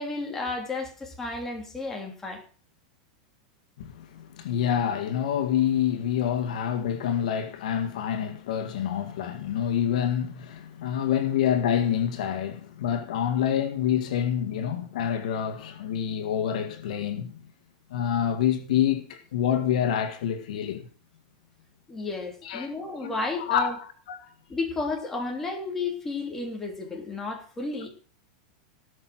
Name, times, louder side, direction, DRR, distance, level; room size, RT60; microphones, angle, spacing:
voice 1, 0.0-2.4 21.9-23.7 24.5-27.9, left 3 dB, 10° left, 3.2 m, -32 dB
voice 2, 3.8-17.4 17.9-20.9 22.4-22.7 23.0-24.3, left 9 dB, 75° left, 1.9 m, -27 dB
18.0 x 6.4 x 6.2 m
supercardioid pair, 155°, 4 cm